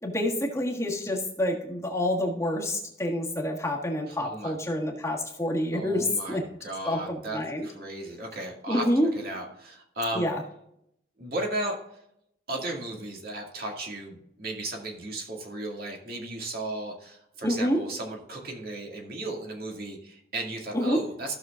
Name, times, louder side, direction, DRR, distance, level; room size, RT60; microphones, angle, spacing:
voice 1, 0.0-6.4 6.8-7.7 8.7-9.1 10.1-10.4 17.4-17.8 20.7-21.0, left 1 dB, 15° left, -1 dB, 1.5 m, -27 dB
voice 2, 4.1-4.5 5.7-8.8 9.1-10.3 11.2-11.8 12.5-21.3, right 1 dB, 55° right, 0 dB, 2.1 m, -35 dB
15.0 x 6.5 x 2.4 m, 0.76 s
head